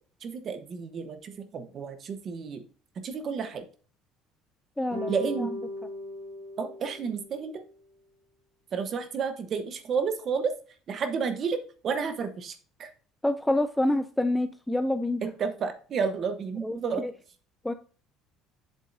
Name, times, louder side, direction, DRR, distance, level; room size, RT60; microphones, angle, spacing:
voice 1, 0.2-2.6 3.0-3.7 5.1-5.5 6.6-7.6 8.7-10.5 10.9-12.9 15.2-17.1, right 5 dB, 30° right, 9 dB, 0.9 m, -31 dB
voice 2, 4.8-5.1 5.4-5.5 13.2-15.2 16.6-16.8 17.0-17.1 17.6-17.7, left 1 dB, 5° left, 10 dB, 0.3 m, -27 dB
sound 1, 4.9-7.5, left 1 dB, 90° right, 2.4 m, -37 dB
7.5 x 7.3 x 2.6 m, 0.40 s
cardioid pair, 175°, 0 cm